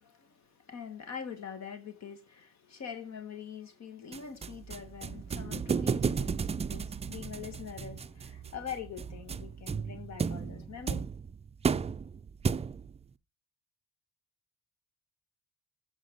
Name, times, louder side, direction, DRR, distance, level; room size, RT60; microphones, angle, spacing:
voice 1, 0.0-11.0, left 7 dB, 60° left, 1.6 m, -44 dB
sound 1, 4.1-13.0, right 6 dB, 20° right, 0.3 m, -34 dB
7.9 x 4.3 x 5.2 m
cardioid pair, 90°, 30 cm